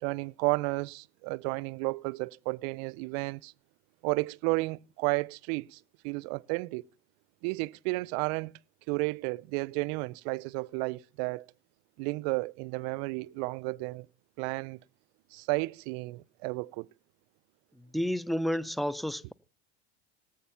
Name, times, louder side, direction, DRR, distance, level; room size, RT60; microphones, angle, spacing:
voice 1, 0.0-3.5 4.0-6.9 7.4-8.6 8.9-11.5 12.0-14.1 14.4-14.8 15.3-16.9, right 25 dB, 70° right, 0.6 m, -32 dB
voice 2, 17.8-19.3, equal, ahead, 0.5 m, -31 dB
18.0 x 7.9 x 5.6 m
hypercardioid pair, 85°, 33 cm